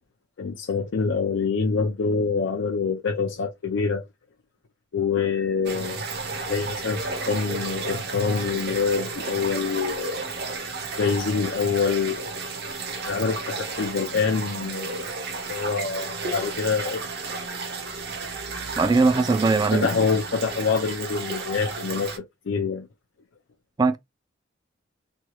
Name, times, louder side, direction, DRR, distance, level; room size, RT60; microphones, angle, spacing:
voice 1, 0.4-4.0 4.9-6.0 6.4-10.2 11.0-12.3 13.0-15.1 15.5-17.0 19.7-22.9, left 5 dB, 65° left, 0.4 m, -26 dB
sound 1, 5.7-22.2, right 3 dB, 55° right, 0.7 m, -33 dB
voice 2, 18.8-19.9 23.8-24.0, right 3 dB, 20° right, 0.3 m, -20 dB
3.0 x 2.3 x 2.9 m
head